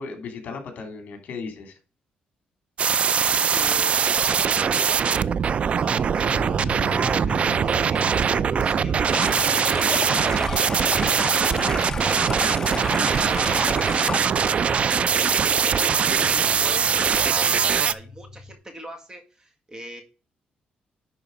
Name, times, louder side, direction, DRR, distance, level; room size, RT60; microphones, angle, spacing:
voice 1, 0.0-1.8 16.2-16.6, left 4 dB, 60° left, 5 dB, 2.9 m, -36 dB
sound 1, 2.8-17.9, right 7 dB, 45° right, 0.4 m, -22 dB
voice 2, 3.5-5.2 5.7-16.0 16.6-20.0, right 1 dB, 20° right, 6 dB, 1.8 m, -41 dB
sound 2, 6.2-18.5, left 3 dB, 40° left, 3.1 m, -41 dB
Stream, 9.1-14.2, left 3 dB, 20° left, 1.0 m, -31 dB
11.0 x 4.0 x 5.1 m, 0.36 s
cardioid pair, 120°, 3 cm